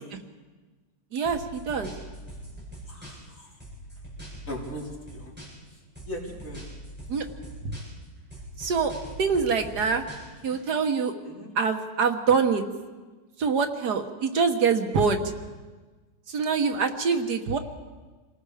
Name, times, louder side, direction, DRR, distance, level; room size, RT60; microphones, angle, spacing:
voice 1, 1.1-1.9 7.1-7.3 8.6-8.9 9.2-10.1 10.4-11.1 11.6-12.6 13.4-15.2 16.3-17.6, right 5 dB, 75° right, 6 dB, 1.9 m, -24 dB
sound 1, 1.3-3.3 3.6-5.7 6.0-8.0 8.3-10.6, right 1 dB, 5° right, 7.6 m, -42 dB
voice 2, 2.9-3.5 4.5-5.3 5.7-5.8 6.0-6.7 11.2-11.5, equal, 50° left, -4 dB, 4.6 m, -39 dB
28.5 x 18.5 x 5.0 m, 1.3 s
omnidirectional pair, 1.7 m